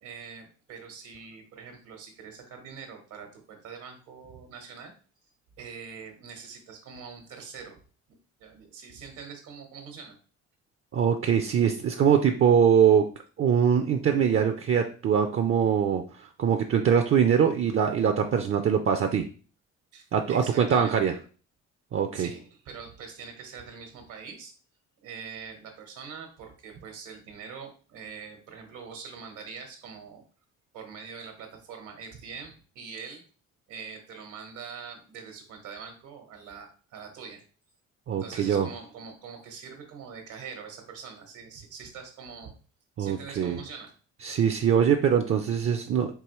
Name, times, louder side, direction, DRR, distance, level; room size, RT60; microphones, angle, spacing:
voice 1, 0.0-4.9 5.6-7.8 8.4-10.2 19.9-21.1 22.1-24.5 25.0-30.2 30.7-33.2 33.7-37.4 38.2-42.6 43.0-43.9, right 6 dB, 85° right, 4 dB, 1.3 m, -43 dB
voice 2, 10.9-13.1 13.4-19.3 20.1-21.1 21.9-22.3 38.1-38.7 43.0-43.6 44.2-46.1, right 7 dB, 45° right, 6 dB, 0.5 m, -23 dB
4.7 x 3.0 x 3.0 m, 0.38 s
cardioid pair, 90°, 30 cm